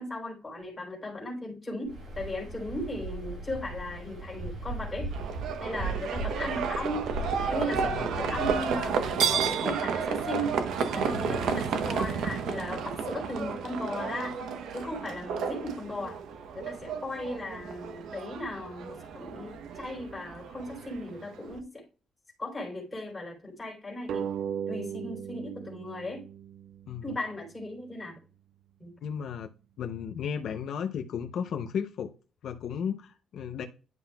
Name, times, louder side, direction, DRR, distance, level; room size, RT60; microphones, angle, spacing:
voice 1, 0.0-5.1 5.6-7.1 7.5-10.6 10.9-14.4 14.7-16.2 16.5-21.8 22.4-24.3 24.7-26.2 27.0-28.1 28.8-28.9, left 1 dB, 15° left, 3.8 m, -37 dB
Waves surf, 1.8-9.2, right 2 dB, 50° right, 2.7 m, -38 dB
Livestock farm animals working animals, 5.1-21.6, right 6 dB, 85° right, 0.9 m, -32 dB
voice 2, 7.7-8.4 11.0-11.6 26.9-27.2 29.0-29.5 29.8-32.1 32.4-33.7, left 7 dB, 65° left, 0.6 m, -35 dB
sound 1, 24.1-27.3, right 8 dB, 65° right, 0.4 m, -37 dB
10.5 x 5.7 x 2.3 m
cardioid pair, 155°, 0 cm